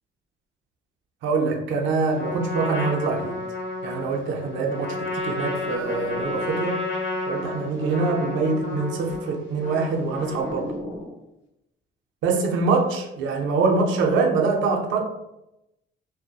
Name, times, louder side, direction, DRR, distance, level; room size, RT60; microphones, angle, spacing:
voice 1, 1.2-3.4 3.8-6.8 7.3-10.7 12.2-15.0, right 4 dB, 80° right, 2 dB, 0.4 m, -24 dB
Trumpet, 2.1-10.8, left 2 dB, 65° left, 1.0 m, -31 dB
sound 1, 5.1-6.9 7.3-8.4 9.3-11.2, left 1 dB, 20° left, 0.6 m, -39 dB
2.7 x 2.0 x 2.2 m, 0.88 s
cardioid pair, 90°, 20 cm